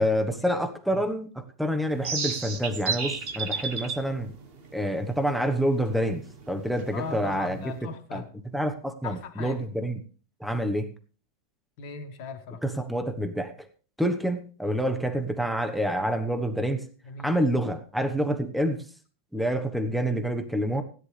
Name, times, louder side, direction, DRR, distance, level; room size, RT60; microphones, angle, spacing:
voice 1, 0.0-4.3 4.7-7.7 8.1-8.2 8.5-10.0 10.4-10.9 12.6-13.7 14.0-16.8 17.2-18.8 19.3-20.8, equal, ahead, 0.4 m, -27 dB
sound 1, 1.9-7.8, right 5 dB, 35° right, 1.0 m, -34 dB
voice 2, 6.9-8.3 9.0-9.6 11.8-12.6 17.0-17.3, left 5 dB, 65° left, 2.2 m, -38 dB
16.5 x 10.5 x 3.3 m
omnidirectional pair, 2.2 m